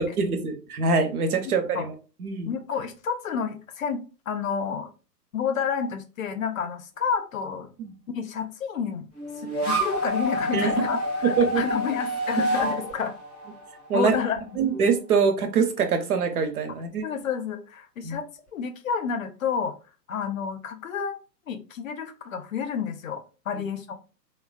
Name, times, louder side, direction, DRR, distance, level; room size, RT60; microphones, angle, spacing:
voice 1, 0.0-1.9 2.2-2.5 7.8-7.9 10.5-10.9 11.2-11.6 13.9-14.1 14.6-17.0 18.0-18.2, right 5 dB, 60° right, 7 dB, 0.8 m, -24 dB
voice 2, 2.5-4.9 5.3-7.7 8.1-9.1 9.4-13.1 13.9-14.4 17.0-18.2 18.5-19.7 20.1-21.2 21.5-23.2 23.5-24.0, left 7 dB, 55° left, 8 dB, 0.6 m, -30 dB
sound 1, 9.2-14.4, equal, ahead, 0.4 m, -28 dB
3.3 x 2.2 x 2.2 m, 0.35 s
figure-of-eight pair, 125°, 50 cm